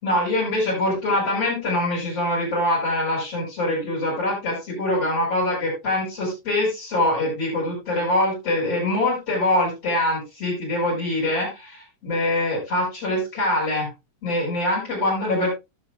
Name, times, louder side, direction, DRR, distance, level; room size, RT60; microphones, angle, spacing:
voice 1, 0.0-13.9 14.2-15.5, left 1 dB, 45° left, -2 dB, 7.9 m, -24 dB
19.0 x 7.9 x 2.5 m, 0.24 s
omnidirectional pair, 3.9 m